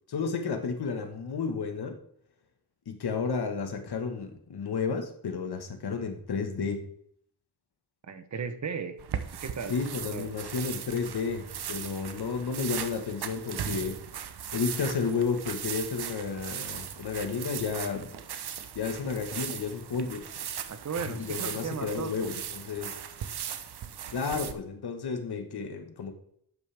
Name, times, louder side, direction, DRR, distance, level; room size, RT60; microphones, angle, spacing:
voice 1, 0.1-2.0 2.9-6.9 9.7-14.0 14.5-18.2 18.7-20.3 21.1-23.0 24.1-26.1, left 5 dB, 80° left, 6 dB, 1.5 m, -32 dB
voice 2, 8.1-9.0 9.3-9.8 10.1-10.4 20.7-22.3, right 6 dB, 45° right, 9 dB, 0.9 m, -36 dB
sound 1, 9.0-24.5, right 8 dB, 85° right, 0.9 m, -38 dB
12.0 x 8.5 x 3.5 m, 0.68 s
wide cardioid pair, 175°, 38 cm